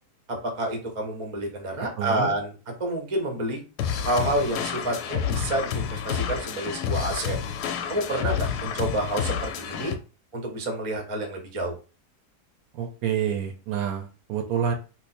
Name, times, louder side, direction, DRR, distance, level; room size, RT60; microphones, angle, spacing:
voice 1, 0.3-2.5 2.8-3.6 4.0-7.4 7.9-9.9 10.3-11.8, right 1 dB, 40° right, 3 dB, 0.5 m, -29 dB
voice 2, 2.0-2.3 12.7-14.8, right 8 dB, 70° right, 5 dB, 1.0 m, -28 dB
sound 1, 3.8-9.9, left 8 dB, 75° left, 1.1 m, -29 dB
3.0 x 2.0 x 4.1 m, 0.34 s
omnidirectional pair, 1.8 m